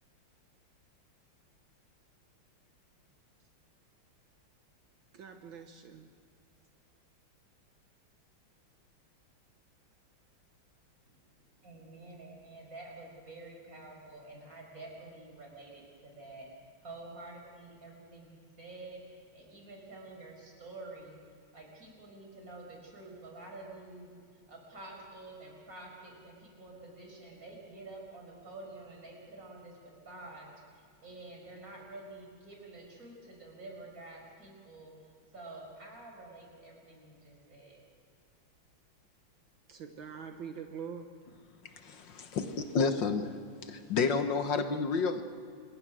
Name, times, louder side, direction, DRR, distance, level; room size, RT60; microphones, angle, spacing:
voice 1, 5.1-6.1 39.7-41.1, right 7 dB, 70° right, 5 dB, 2.0 m, -44 dB
voice 2, 11.6-16.5 16.8-21.2 21.5-24.1 24.5-29.7 30.0-34.9 35.3-37.8, right 2 dB, 40° right, 0 dB, 5.7 m, -49 dB
voice 3, 41.8-45.2, left 4 dB, 65° left, 7 dB, 1.8 m, -31 dB
27.0 x 22.0 x 6.3 m, 2.3 s
omnidirectional pair, 2.3 m